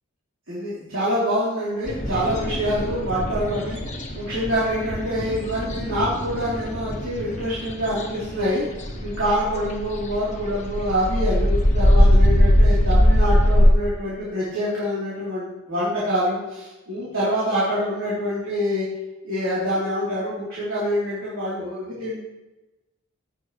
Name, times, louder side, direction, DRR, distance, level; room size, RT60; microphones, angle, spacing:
voice 1, 0.5-3.8 4.2-8.6 9.0-18.9 19.2-22.2, equal, 65° right, -10 dB, 3.8 m, -25 dB
sound 1, 1.9-13.7, equal, 35° left, 1.4 m, -21 dB
16.5 x 7.3 x 3.3 m, 1.0 s
head